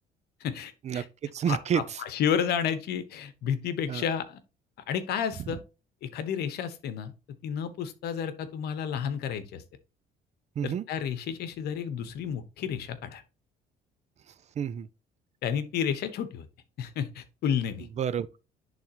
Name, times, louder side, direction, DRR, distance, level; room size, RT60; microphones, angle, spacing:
voice 1, 0.4-1.1 1.5-4.4 4.9-5.6 6.0-7.1 7.4-9.6 10.6-13.2 15.4-16.5 16.8-17.9, left 8 dB, 70° left, 1.1 m, -31 dB
voice 2, 1.3-2.0 3.9-4.0 10.6-10.9 14.6-14.9 18.0-18.4, right 8 dB, 40° right, 0.5 m, -29 dB
10.5 x 3.6 x 3.0 m
cardioid pair, 110°, 17 cm